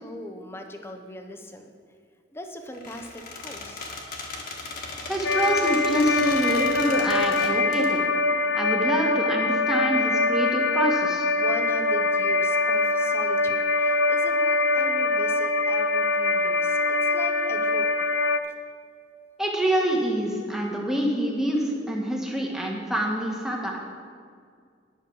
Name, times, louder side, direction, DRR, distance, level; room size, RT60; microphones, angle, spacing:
voice 1, 0.0-1.7 2.3-3.9 11.4-16.8 17.1-18.0, equal, 15° left, 4 dB, 0.8 m, -39 dB
Squeak, 2.7-7.9, left 3 dB, 50° left, 1.6 m, -37 dB
voice 2, 5.1-8.1 8.5-11.3 19.4-23.8, right 1 dB, 5° right, -2 dB, 1.4 m, -26 dB
sound 1, 5.2-18.4, left 3 dB, 85° left, 0.5 m, -23 dB
10.5 x 6.4 x 6.2 m, 2.1 s
head